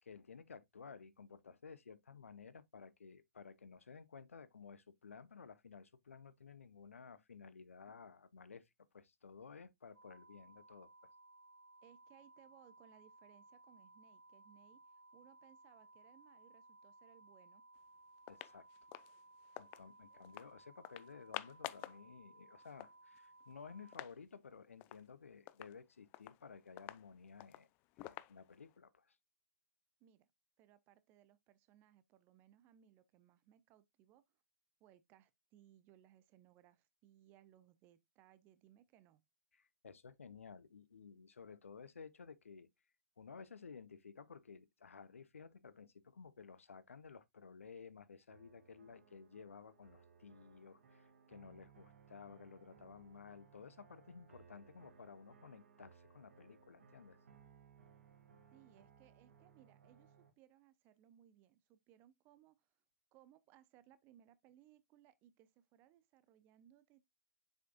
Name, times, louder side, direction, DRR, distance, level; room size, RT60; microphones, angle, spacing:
voice 1, 0.0-10.9 18.3-18.7 19.6-27.7 28.0-29.2 39.5-42.7 43.2-57.2, left 5 dB, 70° left, 0.7 m, -55 dB
sound 1, 9.9-24.0, right 2 dB, 85° right, 1.4 m, -62 dB
voice 2, 11.8-17.6 20.1-20.2 30.0-30.3 30.6-34.2 34.8-39.2 58.5-62.7 63.1-67.1, right 11 dB, 25° right, 0.7 m, -66 dB
sound 2, 17.8-17.9 18.2-19.8 20.2-20.5 20.8-22.0 22.3-22.4 22.6-24.2 24.5-24.6 24.8-25.1 25.5-28.8, left 18 dB, 25° left, 0.4 m, -50 dB
sound 3, 48.3-60.3, right 6 dB, 60° right, 1.9 m, -64 dB
7.3 x 6.0 x 2.2 m
figure-of-eight pair, 115°, 8 cm